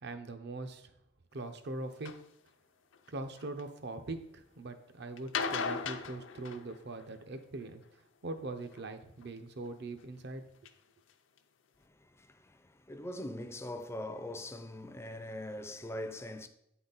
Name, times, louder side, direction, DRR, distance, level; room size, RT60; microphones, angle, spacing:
voice 1, 0.0-0.9 1.3-2.1 3.1-7.8 8.2-10.4, right 2 dB, 60° right, 0.7 m, -42 dB
sound 1, 2.0-2.2 2.9-3.6 5.2-7.1 8.7-9.3 10.0-10.1 10.6-10.7 11.1-11.2 11.4-11.5, left 5 dB, 75° left, 0.5 m, -37 dB
voice 2, 11.8-16.5, left 1 dB, 15° left, 0.4 m, -42 dB
8.5 x 4.0 x 4.0 m
head